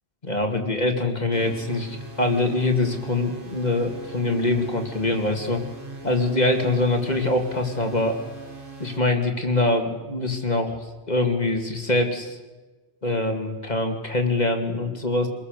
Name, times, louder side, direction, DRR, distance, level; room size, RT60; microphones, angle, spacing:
voice 1, 0.2-5.6 6.0-8.2 8.8-12.4 13.0-15.3, left 2 dB, 40° left, 4 dB, 2.8 m, -24 dB
sound 1, 1.3-9.0, right 3 dB, 55° right, 2.5 m, -40 dB
26.5 x 21.5 x 6.8 m, 1.2 s
omnidirectional pair, 1.1 m